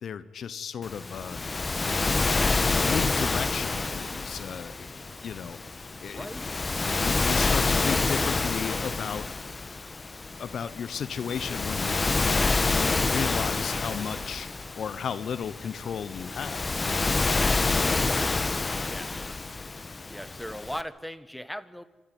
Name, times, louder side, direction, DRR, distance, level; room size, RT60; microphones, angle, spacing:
voice 1, 0.0-1.4 2.4-6.3 7.0-9.3 10.4-12.4 12.7-14.5 14.8-16.7, left 7 dB, 65° left, 16 dB, 0.9 m, -34 dB
Waves surf, 0.8-20.8, left 3 dB, 35° left, 1.4 m, -28 dB
voice 2, 6.1-6.5 18.0-18.4 18.8-19.3 20.1-21.8, equal, 5° left, 15 dB, 1.6 m, -39 dB
26.5 x 14.0 x 9.6 m, 1.2 s
hypercardioid pair, 45°, 0 cm